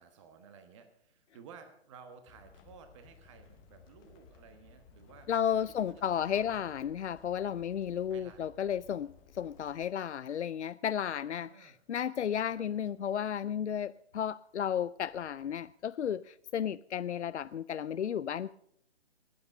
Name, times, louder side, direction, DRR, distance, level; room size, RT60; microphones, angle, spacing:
voice 1, 0.0-5.3 5.9-6.7 8.1-8.5 11.3-11.8 12.5-12.6, right 6 dB, 25° right, 1.2 m, -55 dB
sound 1, 2.3-9.9, left 5 dB, 15° left, 0.8 m, -59 dB
voice 2, 5.3-18.5, left 9 dB, 85° left, 0.5 m, -33 dB
20.5 x 8.5 x 5.4 m
figure-of-eight pair, 145°, 34 cm